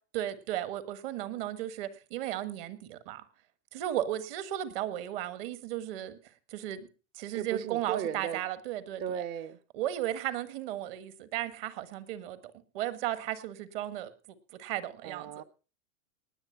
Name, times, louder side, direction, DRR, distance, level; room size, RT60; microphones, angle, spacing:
voice 1, 0.1-3.2 3.7-6.2 6.5-6.8 7.1-9.0 9.7-12.4 12.7-14.1 14.6-15.3, right 12 dB, 45° right, 1.5 m, -35 dB
voice 2, 7.3-8.4 9.0-9.6 15.0-15.4, right 9 dB, 25° right, 0.6 m, -36 dB
19.0 x 7.8 x 5.6 m
supercardioid pair, 165°, 40 cm